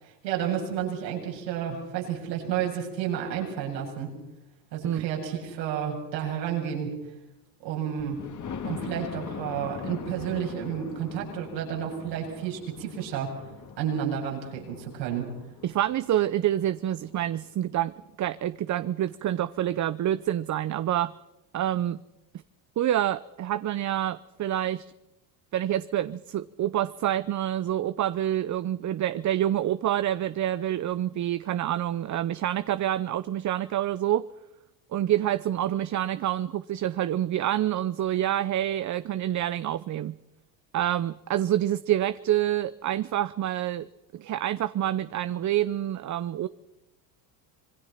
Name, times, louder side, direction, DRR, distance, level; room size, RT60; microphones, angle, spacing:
voice 1, 0.0-4.1 4.7-6.9 7.6-8.2 8.6-13.3 13.8-15.3, right 9 dB, 90° right, 7.7 m, -31 dB
Thunder, 8.0-17.7 18.3-18.4 18.8-18.9 19.1-19.2, left 7 dB, 35° left, 2.4 m, -42 dB
voice 2, 15.6-21.1 21.5-22.0 22.8-24.9 25.5-34.3 34.9-40.2 40.7-43.9 44.1-46.5, right 12 dB, 35° right, 0.7 m, -27 dB
26.0 x 21.5 x 5.9 m
supercardioid pair, 85°, 50 cm